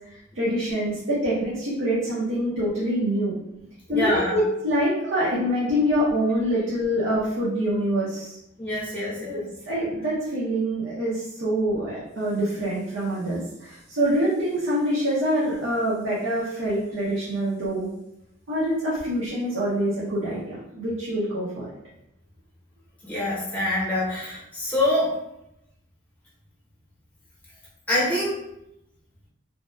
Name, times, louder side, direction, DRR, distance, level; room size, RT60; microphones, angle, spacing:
voice 1, 0.3-3.3 3.9-8.4 9.7-17.9 18.5-21.7, equal, 75° right, -8 dB, 0.7 m, -25 dB
voice 2, 3.9-4.4 8.6-9.4 23.0-25.2 27.9-28.4, left 1 dB, 10° left, -7 dB, 0.7 m, -25 dB
2.7 x 2.2 x 2.2 m, 0.84 s
head